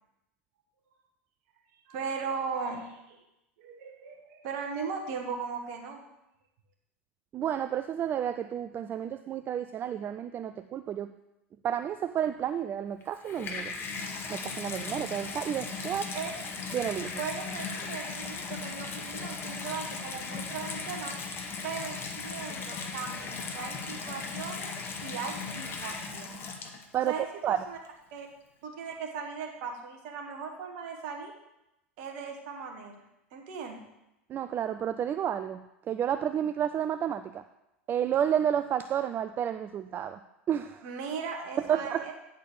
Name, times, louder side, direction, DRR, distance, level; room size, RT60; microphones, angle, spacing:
voice 1, 1.9-3.2 3.6-6.0 16.1-16.3 17.2-21.2 21.6-24.7 25.0-26.5 27.1-27.8 28.1-28.3 28.6-31.3 32.0-33.0 33.3-33.8 40.8-42.1, right 5 dB, 55° right, 2 dB, 1.6 m, -38 dB
voice 2, 7.3-11.1 11.6-13.8 14.3-16.1 16.7-17.2 26.9-27.6 34.3-35.6 35.9-37.4 37.9-40.2 40.5-40.9 41.6-42.1, right 9 dB, 30° right, 11 dB, 0.4 m, -31 dB
Water tap faucet / Bathtub (filling or washing), 13.0-27.1 27.8-27.9, left 4 dB, 35° left, 1.4 m, -37 dB
10.0 x 4.4 x 6.8 m, 0.89 s
figure-of-eight pair, 80°, 7 cm